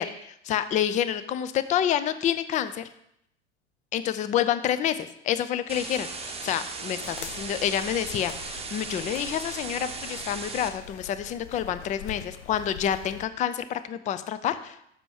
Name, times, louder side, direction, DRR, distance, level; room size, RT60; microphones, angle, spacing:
voice 1, 0.0-2.9 3.9-14.8, left 10 dB, 20° left, 12 dB, 0.4 m, -28 dB
sound 1, 5.7-10.7, right 4 dB, 15° right, 1.1 m, -37 dB
sound 2, 7.0-13.3, left 9 dB, 70° left, 0.7 m, -44 dB
6.8 x 5.6 x 4.8 m, 0.75 s
hypercardioid pair, 85°, 35 cm